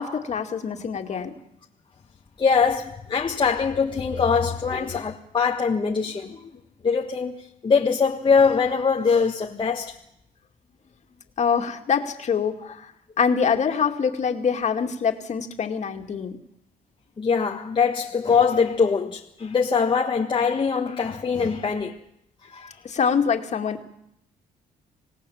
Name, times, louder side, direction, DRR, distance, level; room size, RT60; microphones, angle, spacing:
voice 1, 0.0-1.4 9.5-9.6 11.4-12.9 13.2-16.4 22.8-23.8, left 6 dB, 45° left, 2.4 m, -25 dB
voice 2, 2.4-6.4 6.8-7.4 7.6-9.9 17.2-21.9 22.5-22.7, left 5 dB, 30° left, 1.4 m, -22 dB
26.5 x 18.0 x 7.3 m
cardioid pair, 120°, 16 cm